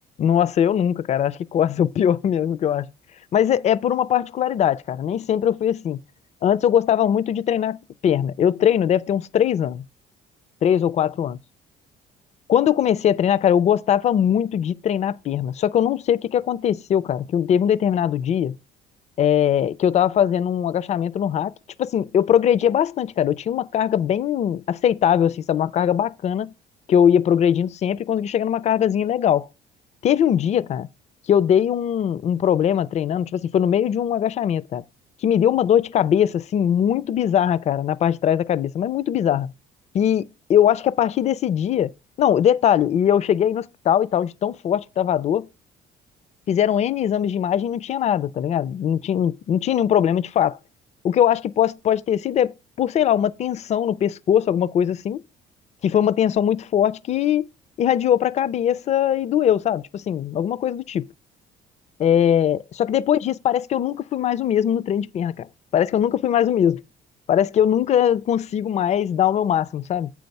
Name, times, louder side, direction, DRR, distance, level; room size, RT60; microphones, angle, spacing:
voice 1, 0.2-2.9 3.3-6.0 6.4-9.8 10.6-11.4 12.5-18.6 19.2-21.5 21.8-26.5 26.9-29.5 30.0-30.9 31.3-34.8 35.2-39.5 39.9-41.9 42.2-45.5 46.5-50.6 51.0-55.2 55.8-57.5 57.8-61.1 62.0-65.5 65.7-66.8 67.3-70.1, left 9 dB, 40° left, 0.4 m, -21 dB
7.6 x 4.5 x 5.3 m
cardioid pair, 110°, 17 cm